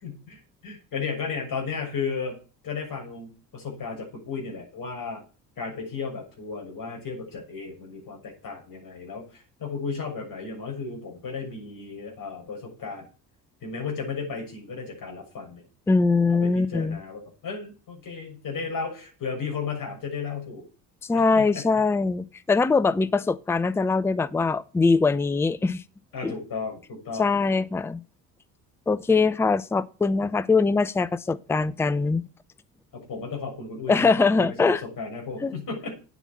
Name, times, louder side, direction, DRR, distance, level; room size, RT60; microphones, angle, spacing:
voice 1, 0.0-2.4 2.6-5.2 5.6-13.1 13.6-15.6 16.3-20.6 21.1-21.7 26.1-27.4 32.9-36.0, left 5 dB, 40° left, 6.9 m, -34 dB
voice 2, 15.9-17.0 21.1-25.8 26.2-26.3 27.2-28.0 28.9-32.2 33.9-34.8 35.4-35.5, left 4 dB, 5° left, 0.6 m, -22 dB
9.2 x 8.0 x 8.3 m
figure-of-eight pair, 55°, 49 cm